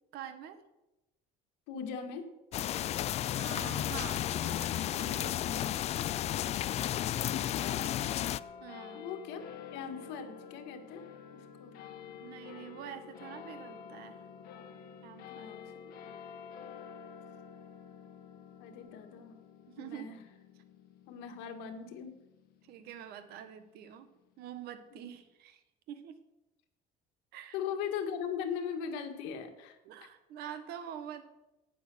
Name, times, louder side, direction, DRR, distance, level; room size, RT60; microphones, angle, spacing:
voice 1, 0.1-0.6 3.3-5.8 8.6-9.1 12.2-14.2 15.0-15.5 19.7-20.1 22.6-24.1 24.4-25.6 25.9-26.2 27.3-27.6 29.8-31.2, right 9 dB, 65° right, 10 dB, 1.5 m, -46 dB
voice 2, 1.7-2.3 7.3-8.1 8.9-11.8 15.3-15.7 16.0-16.1 18.6-19.4 19.8-20.2 21.1-22.2 25.0-25.1 27.5-30.1, left 7 dB, 85° left, 6 dB, 2.0 m, -40 dB
sound 1, 2.5-8.4, left 12 dB, 40° left, 0.4 m, -33 dB
sound 2, 6.8-23.5, left 7 dB, 60° left, 1.9 m, -50 dB
18.0 x 6.9 x 6.3 m, 0.96 s
cardioid pair, 150°, 18 cm